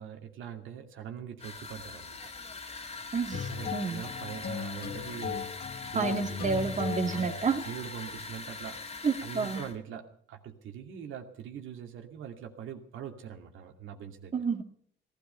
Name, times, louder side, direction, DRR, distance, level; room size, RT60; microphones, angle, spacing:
voice 1, 0.0-2.2 3.5-6.4 7.1-7.3 7.6-14.3, right 8 dB, 80° right, 4 dB, 2.5 m, -43 dB
sound 1, 1.4-9.8, left 4 dB, 30° left, 2.2 m, -42 dB
voice 2, 3.1-4.0 5.9-7.6 9.0-9.6 14.3-14.6, right 5 dB, 40° right, 5 dB, 2.0 m, -30 dB
sound 2, 3.3-8.2, left 7 dB, 55° left, 1.5 m, -38 dB
18.0 x 13.0 x 5.6 m, 0.63 s
cardioid pair, 90°, 20 cm